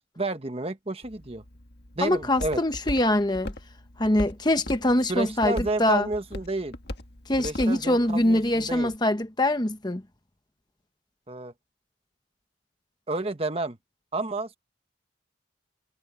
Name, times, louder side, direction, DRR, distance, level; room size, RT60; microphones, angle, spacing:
voice 1, 0.2-1.4 1.9-2.6 5.1-6.7 7.4-8.9 11.3-11.5 13.1-13.8 14.1-14.6, right 2 dB, 30° right, 1.3 m, -30 dB
Walk footsteps, 1.0-9.0, left 1 dB, 55° left, 1.8 m, -40 dB
voice 2, 2.0-3.5 4.0-6.1 7.3-10.0, left 1 dB, 20° left, 1.1 m, -24 dB
head